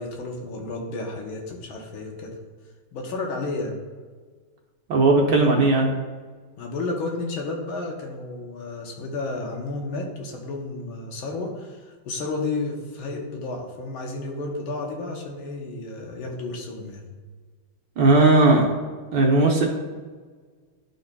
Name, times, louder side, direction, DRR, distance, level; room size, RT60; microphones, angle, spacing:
voice 1, 0.0-2.4 2.9-3.8 6.6-17.0, left 3 dB, 75° left, 1 dB, 1.7 m, -32 dB
voice 2, 4.9-5.9 18.0-18.7 19.1-19.7, right 2 dB, 65° right, 0 dB, 1.2 m, -17 dB
11.5 x 3.9 x 2.2 m, 1.5 s
omnidirectional pair, 2.4 m